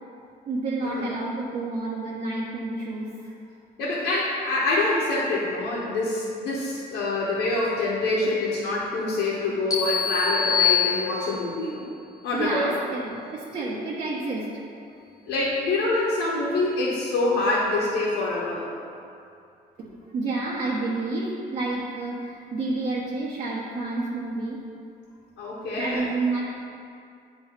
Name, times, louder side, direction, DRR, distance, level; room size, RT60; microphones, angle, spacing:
voice 1, 0.5-3.3 12.3-14.6 19.8-19.9 20.1-24.6 25.8-26.4, right 3 dB, 50° right, -7 dB, 1.1 m, -29 dB
voice 2, 3.8-11.8 12.2-12.7 15.3-18.7 25.4-26.1, left 2 dB, 80° left, -7 dB, 1.2 m, -25 dB
sound 1, 9.7-11.6, left 8 dB, 20° left, 0.7 m, -24 dB
9.3 x 3.1 x 4.4 m, 2.4 s
cardioid pair, 110°, 17 cm